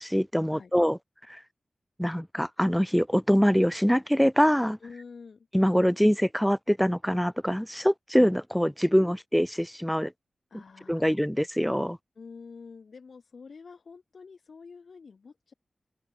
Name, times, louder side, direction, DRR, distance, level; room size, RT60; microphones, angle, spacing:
voice 1, 0.0-1.0 1.3-1.4 2.0-4.8 5.5-10.1 10.9-12.0, equal, ahead, 0.4 m, -24 dB
voice 2, 4.8-5.5 10.5-11.2 12.2-15.5, left 5 dB, 65° left, 2.5 m, -47 dB
open air
wide cardioid pair, 115°, 0 cm